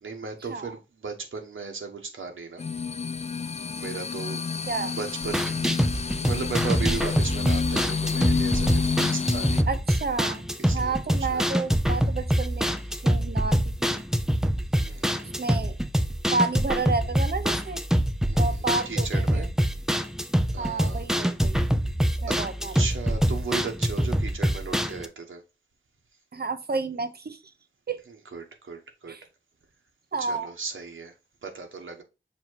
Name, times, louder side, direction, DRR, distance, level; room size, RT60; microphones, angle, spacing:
voice 1, 0.0-2.6 3.8-4.4 4.8-5.7 6.2-9.6 10.6-11.6 12.9-13.0 14.8-15.3 18.3-19.5 20.5-21.0 22.3-22.4 22.7-25.4 28.1-29.1 30.2-31.1 31.4-32.0, right 4 dB, 85° right, 1.3 m, -36 dB
sound 1, 2.6-9.6, left 5 dB, 35° left, 0.3 m, -29 dB
sound 2, 5.2-25.1, equal, ahead, 0.6 m, -25 dB
voice 2, 9.7-12.8 13.0-14.0 15.4-15.8 16.3-17.8 18.4-19.5 20.6-21.6 22.2-22.8 26.3-27.4 27.9-28.0 29.1-29.2 30.1-30.5, right 4 dB, 55° right, 0.8 m, -30 dB
7.0 x 2.9 x 4.6 m
wide cardioid pair, 60°, 20 cm